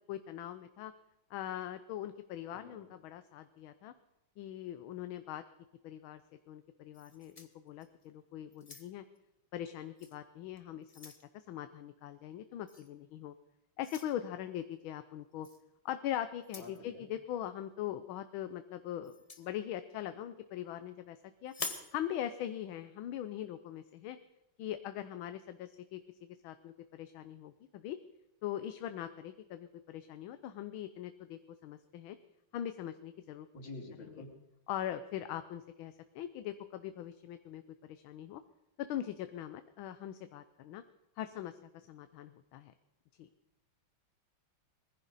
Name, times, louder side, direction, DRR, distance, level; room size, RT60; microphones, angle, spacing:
voice 1, 0.1-0.9 1.3-3.9 4.4-5.4 5.8-6.2 6.5-9.0 9.5-13.3 13.8-15.5 15.8-21.5 21.9-24.2 24.6-26.0 26.4-28.0 28.4-32.2 32.5-33.5 34.0-34.3 34.7-38.4 38.8-40.8 41.2-42.7 43.2-43.3, left 11 dB, 80° left, 10 dB, 1.5 m, -41 dB
voice 2, 2.5-2.9 16.6-17.1 33.5-34.3, left 2 dB, 60° left, -1 dB, 3.6 m, -48 dB
sound 1, 6.9-8.1 8.5-9.2 10.0-10.2 10.6-11.3 12.7-12.9 13.8-14.1 15.4-15.6 16.4-16.8 19.0-19.5 21.5-21.9, left 3 dB, 25° left, 0.8 m, -45 dB
21.5 x 15.0 x 4.1 m, 0.97 s
omnidirectional pair, 2.3 m